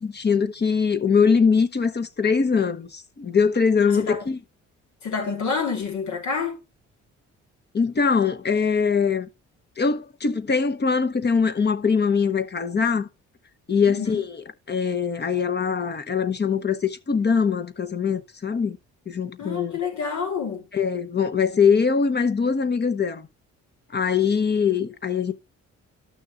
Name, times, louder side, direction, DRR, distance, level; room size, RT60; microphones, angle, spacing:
voice 1, 0.0-4.4 7.7-9.3 9.8-13.1 13.7-18.8 19.1-19.8 20.7-23.3 23.9-25.3, left 5 dB, 35° left, 1.1 m, -22 dB
voice 2, 3.9-4.2 5.0-6.6 13.8-14.2 19.4-20.7, left 5 dB, 70° left, 3.5 m, -28 dB
13.5 x 6.3 x 2.5 m
cardioid pair, 90°, 30 cm